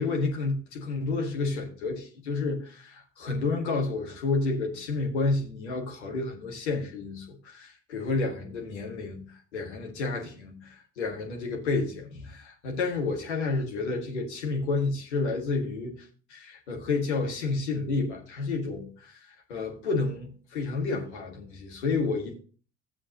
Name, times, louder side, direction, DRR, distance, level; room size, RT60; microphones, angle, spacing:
voice 1, 0.0-22.3, left 3 dB, 75° left, 1.7 m, -30 dB
15.5 x 7.4 x 2.8 m
figure-of-eight pair, 45°, 34 cm